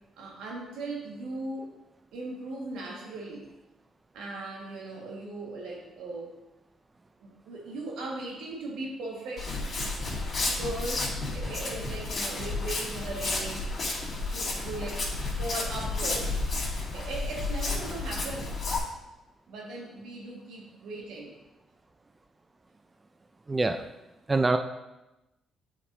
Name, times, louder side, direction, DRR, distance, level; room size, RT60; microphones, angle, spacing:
voice 1, 0.2-1.7 2.1-3.5 4.1-6.4 7.2-9.5 10.6-13.8 14.3-15.1 15.4-16.3 16.9-18.6 19.5-21.3, right 2 dB, 90° right, -2 dB, 1.5 m, -38 dB
Walk footsteps, 9.4-18.8, left 2 dB, 45° left, 2.3 m, -32 dB
voice 2, 23.5-23.8 24.3-24.6, right 3 dB, 25° right, 6 dB, 0.4 m, -24 dB
8.5 x 5.2 x 2.6 m, 0.98 s
cardioid pair, 90°, 0 cm